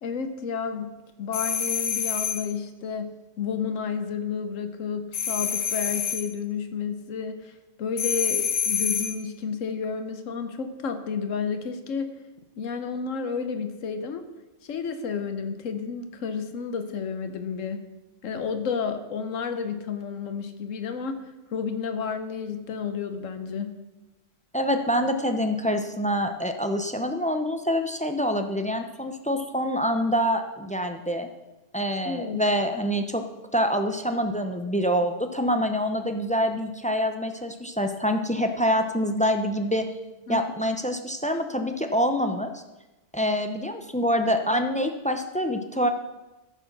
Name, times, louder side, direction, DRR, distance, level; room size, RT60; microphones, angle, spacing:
voice 1, 0.0-0.9 1.2-12.1 12.6-14.2 14.6-17.8 18.2-23.7 32.0-32.4 40.3-40.4, left 6 dB, 85° left, 9 dB, 1.2 m, -31 dB
sound 1, 1.3-2.5 5.1-6.3 8.0-9.2, left 7 dB, 70° left, 1.2 m, -27 dB
voice 2, 24.5-31.3 31.7-33.2 33.5-39.9 40.3-42.6 43.1-45.9, equal, 10° left, 6 dB, 0.4 m, -26 dB
13.5 x 5.1 x 6.6 m, 1.1 s
omnidirectional pair, 1.3 m